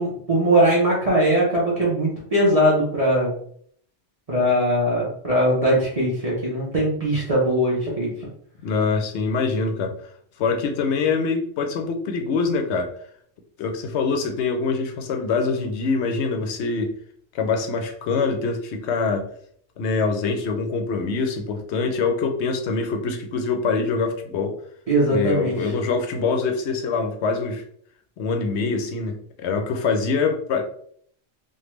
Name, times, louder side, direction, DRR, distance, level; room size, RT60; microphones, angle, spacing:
voice 1, 0.0-3.3 4.3-8.1 24.9-25.5, right 1 dB, 35° right, -6 dB, 0.7 m, -20 dB
voice 2, 8.6-9.9 10.4-12.9 13.6-16.9 17.3-19.3 19.8-24.6 25.1-27.6 28.2-30.6, left 4 dB, 75° left, 5 dB, 0.9 m, -24 dB
3.3 x 2.2 x 3.0 m, 0.62 s
omnidirectional pair, 1.2 m